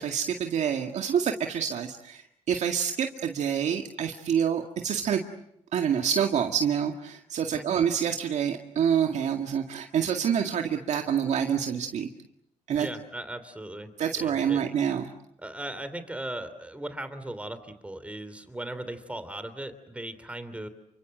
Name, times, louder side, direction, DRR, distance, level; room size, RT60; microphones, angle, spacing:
voice 1, 0.0-2.2 2.5-5.2 5.7-12.1 12.7-12.9 14.0-15.1, right 8 dB, 70° right, 4 dB, 2.1 m, -27 dB
voice 2, 7.5-7.9 12.7-13.9 14.2-14.6 15.4-20.7, right 1 dB, 10° right, 11 dB, 3.1 m, -38 dB
29.5 x 25.0 x 7.8 m, 0.76 s
cardioid pair, 95°, 12 cm